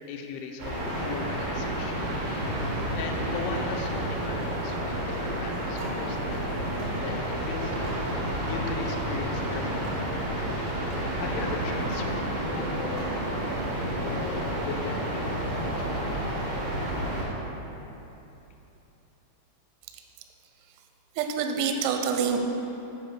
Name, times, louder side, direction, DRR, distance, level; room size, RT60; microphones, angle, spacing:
voice 1, 0.0-2.1 2.9-6.4 7.0-10.5 11.2-13.2 14.0-16.3, left 5 dB, 90° left, 3 dB, 2.3 m, -39 dB
sound 1, 0.6-17.2, right 1 dB, 45° right, 1.8 m, -30 dB
sound 2, 5.8-14.0, right 3 dB, 65° right, 1.9 m, -49 dB
voice 2, 21.2-22.4, right 6 dB, 85° right, 4 dB, 2.9 m, -26 dB
7.6 x 5.7 x 6.0 m, 3.0 s
omnidirectional pair, 5.4 m